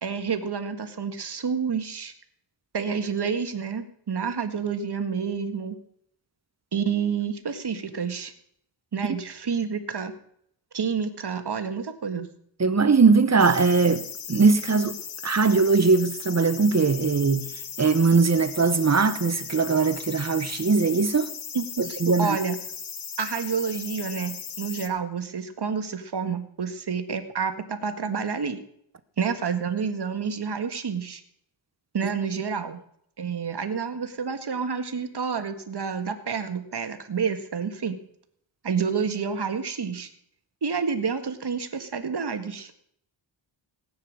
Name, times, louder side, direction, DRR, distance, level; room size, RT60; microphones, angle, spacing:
voice 1, 0.0-2.1 2.7-5.8 6.7-8.3 8.9-10.1 10.7-12.3 21.5-22.6 23.2-28.6 29.2-31.2 31.9-32.8 33.2-38.0 38.6-40.1 40.6-42.7, right 6 dB, 55° right, 1.8 m, -29 dB
voice 2, 12.6-14.0 14.3-15.0 15.2-17.5 17.8-21.3 21.8-22.4, right 4 dB, 35° right, 1.1 m, -20 dB
sound 1, 13.4-24.9, left 7 dB, 80° left, 1.5 m, -37 dB
17.5 x 9.4 x 6.5 m
wide cardioid pair, 95°, 46 cm